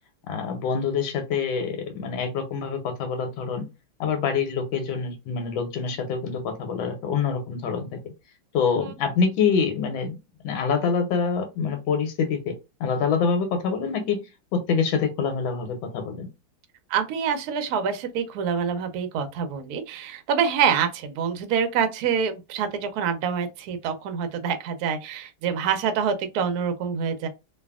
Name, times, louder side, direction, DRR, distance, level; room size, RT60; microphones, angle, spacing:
voice 1, 0.3-3.6 4.0-8.0 8.5-10.2 10.4-12.5 12.8-14.2 14.5-16.3, left 5 dB, 85° left, 1.5 m, -26 dB
voice 2, 16.9-27.3, right 7 dB, 70° right, 0.9 m, -26 dB
3.2 x 2.3 x 2.3 m
omnidirectional pair, 2.1 m